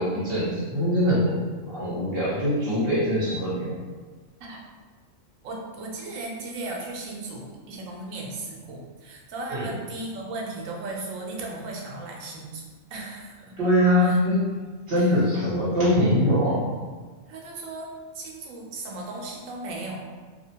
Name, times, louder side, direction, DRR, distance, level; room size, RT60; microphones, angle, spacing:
voice 1, 0.0-1.4 1.7-3.7 9.5-9.7 13.6-14.4 14.9-16.6, equal, 55° right, -9 dB, 1.0 m, -22 dB
voice 2, 5.4-13.6 14.0-14.2 15.0-15.2 17.3-20.0, right 2 dB, 85° right, -1 dB, 1.0 m, -36 dB
2.7 x 2.1 x 2.7 m, 1.4 s
omnidirectional pair, 1.3 m